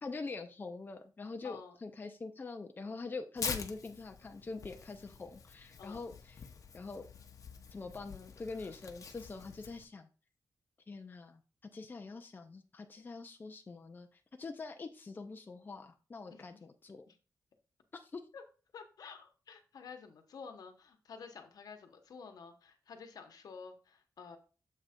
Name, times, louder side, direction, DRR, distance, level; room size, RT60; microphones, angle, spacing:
voice 1, 0.0-6.4 6.7-7.1 7.7-10.1 10.9-11.4 11.7-14.1 14.4-17.0 17.9-18.2, left 3 dB, 30° left, 5 dB, 0.6 m, -44 dB
voice 2, 1.4-1.8 5.8-6.0 16.3-16.4 17.1-17.2 18.3-18.4 18.7-24.4, left 5 dB, 80° left, 6 dB, 1.1 m, -50 dB
Tearing, 3.4-9.9, left 5 dB, 60° left, 0.8 m, -45 dB
7.4 x 3.3 x 5.1 m, 0.35 s
wide cardioid pair, 135°, 6 cm